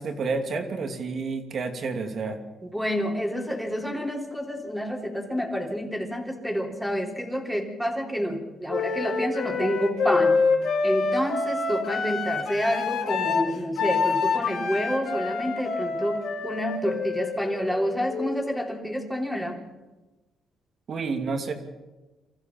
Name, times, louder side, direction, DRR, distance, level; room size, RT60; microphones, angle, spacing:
voice 1, 0.0-2.4 20.9-21.5, right 4 dB, 55° right, 5 dB, 2.8 m, -29 dB
voice 2, 2.6-10.5 10.8-19.6, equal, ahead, 0 dB, 3.7 m, -28 dB
Wind instrument woodwind instrument, 8.7-18.5, left 4 dB, 75° left, 3.6 m, -27 dB
24.5 x 15.0 x 7.6 m, 1.1 s
cardioid pair, 90°, 0 cm